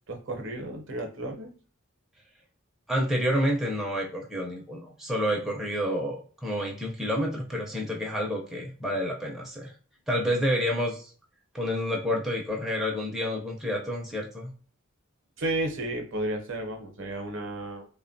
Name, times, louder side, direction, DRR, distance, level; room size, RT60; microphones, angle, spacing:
voice 1, 0.1-1.5 15.4-17.9, right 2 dB, 60° right, 2 dB, 0.6 m, -32 dB
voice 2, 2.9-9.7 10.1-11.1 11.5-14.5, equal, ahead, -2 dB, 0.4 m, -29 dB
3.3 x 2.1 x 2.5 m, 0.40 s
head